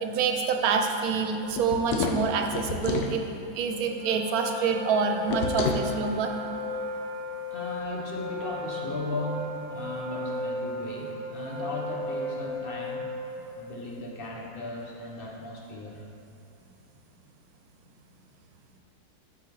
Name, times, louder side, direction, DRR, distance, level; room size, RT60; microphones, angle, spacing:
voice 1, 0.0-3.2 3.5-6.3, right 5 dB, 75° right, 4 dB, 1.1 m, -27 dB
sound 1, 1.5-3.2 5.3-5.9, left 5 dB, 90° left, 1.1 m, -29 dB
Wind instrument woodwind instrument, 3.7-13.6, left 2 dB, 20° left, 1.2 m, -35 dB
voice 2, 7.5-13.1 13.6-16.1, left 1 dB, 45° left, -2 dB, 1.0 m, -36 dB
8.5 x 5.8 x 3.1 m, 2.8 s
omnidirectional pair, 1.6 m